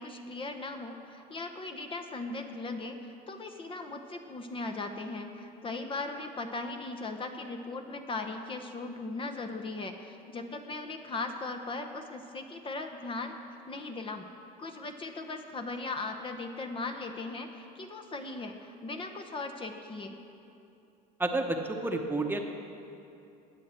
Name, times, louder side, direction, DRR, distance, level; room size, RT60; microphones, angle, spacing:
voice 1, 0.0-13.4 13.7-14.2 14.6-20.2, left 3 dB, 30° left, 5 dB, 0.9 m, -38 dB
voice 2, 21.2-21.6 21.8-22.5, right 2 dB, 10° right, 3 dB, 1.0 m, -30 dB
20.0 x 7.6 x 4.4 m, 2.7 s
supercardioid pair, 95°, 19 cm